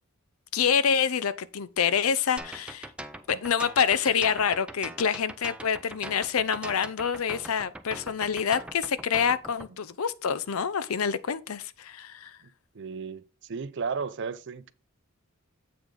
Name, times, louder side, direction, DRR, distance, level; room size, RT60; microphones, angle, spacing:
voice 1, 0.5-2.9 3.3-12.4, left 7 dB, 80° left, 0.6 m, -27 dB
sound 1, 2.4-9.7, right 1 dB, 5° right, 0.5 m, -41 dB
voice 2, 12.7-14.7, right 5 dB, 55° right, 0.5 m, -34 dB
8.0 x 5.1 x 3.7 m
head